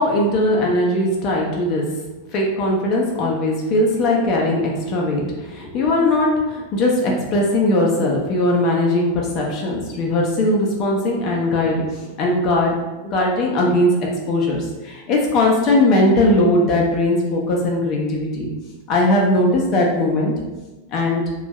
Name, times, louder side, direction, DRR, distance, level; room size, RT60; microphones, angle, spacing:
voice 1, 0.0-1.9 2.3-12.8 13.0-14.0 14.3-18.5 18.9-20.3 20.9-21.2, left 1 dB, 35° left, -2 dB, 0.5 m, -19 dB
2.5 x 2.3 x 3.0 m, 1.1 s
figure-of-eight pair, 90°, 0 cm